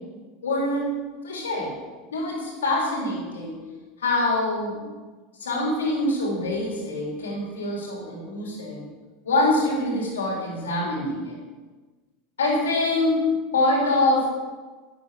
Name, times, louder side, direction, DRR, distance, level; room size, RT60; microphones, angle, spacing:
voice 1, 0.4-1.0 1.2-1.8 2.1-3.6 4.0-4.8 5.4-8.8 9.2-11.4 12.4-13.3 13.5-14.3, left 2 dB, 85° left, -3 dB, 3.8 m, -25 dB
11.0 x 8.8 x 4.9 m, 1.3 s
hypercardioid pair, 90°, 0 cm